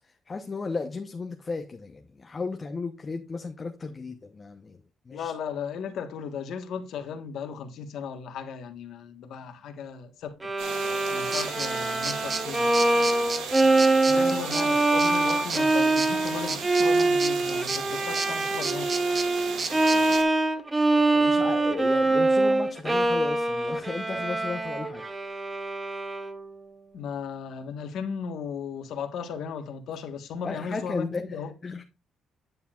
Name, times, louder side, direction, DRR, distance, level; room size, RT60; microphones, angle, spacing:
voice 1, 0.3-4.8 5.1-5.3 14.1-14.4 21.0-25.1 30.4-31.2 31.6-31.8, left 4 dB, 35° left, 0.8 m, -34 dB
voice 2, 5.1-10.5 11.1-12.7 14.1-18.9 26.9-31.6, left 6 dB, 75° left, 1.3 m, -36 dB
Bowed string instrument, 10.4-26.5, right 2 dB, 20° right, 1.0 m, -24 dB
sound 1, 10.6-20.2, right 6 dB, 90° right, 1.9 m, -37 dB
sound 2, 11.3-20.2, right 4 dB, 40° right, 1.2 m, -34 dB
9.4 x 7.0 x 2.4 m
cardioid pair, 90°, 0 cm